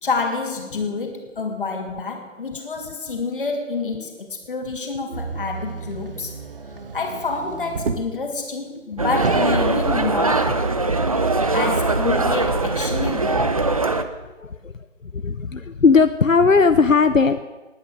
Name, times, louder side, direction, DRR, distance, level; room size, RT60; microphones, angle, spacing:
voice 1, 0.0-6.4 6.9-10.6 11.5-13.5, left 4 dB, 45° left, 3 dB, 2.6 m, -28 dB
Motor vehicle (road), 5.1-8.3 8.8-8.9 9.1-10.6 11.4-11.5, right 4 dB, 45° right, 1.2 m, -32 dB
sound 1, 9.0-14.0, right 3 dB, 30° right, 0.7 m, -21 dB
voice 2, 15.1-17.4, left 4 dB, 85° left, 10 dB, 0.8 m, -17 dB
19.5 x 9.4 x 6.4 m, 1.2 s
figure-of-eight pair, 150°, 38 cm